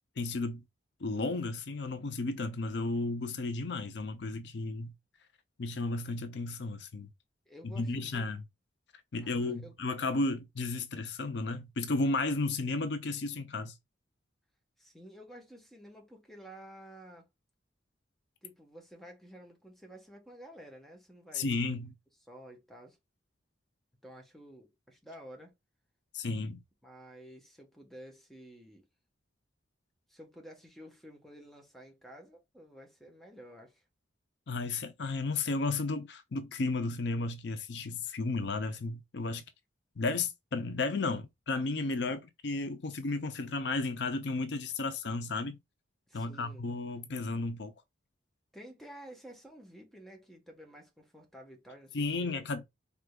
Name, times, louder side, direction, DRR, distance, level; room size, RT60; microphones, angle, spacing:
voice 1, 0.2-0.6 1.0-4.9 5.6-7.1 7.6-8.4 9.1-13.8 21.3-21.9 26.1-26.6 34.5-39.4 40.0-45.6 46.1-47.7 51.9-52.6, left 3 dB, 65° left, 0.6 m, -33 dB
voice 2, 7.5-8.3 9.2-9.7 14.8-17.3 18.4-21.7 22.2-23.0 24.0-25.5 26.8-28.9 30.1-33.8 46.1-46.7 48.5-52.5, right 1 dB, ahead, 1.1 m, -51 dB
4.9 x 3.4 x 2.3 m
head